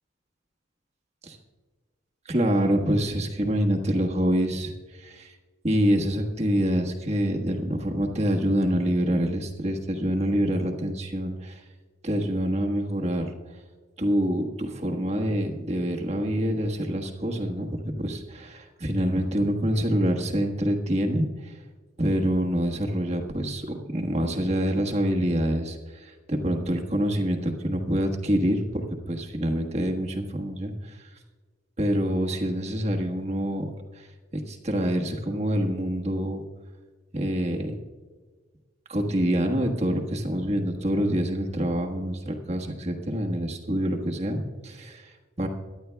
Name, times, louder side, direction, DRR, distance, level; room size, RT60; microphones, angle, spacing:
voice 1, 2.2-5.3 5.6-11.6 12.0-13.3 14.0-21.5 22.0-28.8 29.1-31.0 31.8-34.1 34.3-36.4 37.1-37.7 38.9-45.5, equal, 35° right, 1 dB, 1.3 m, -26 dB
22.5 x 11.0 x 2.3 m, 1.4 s
head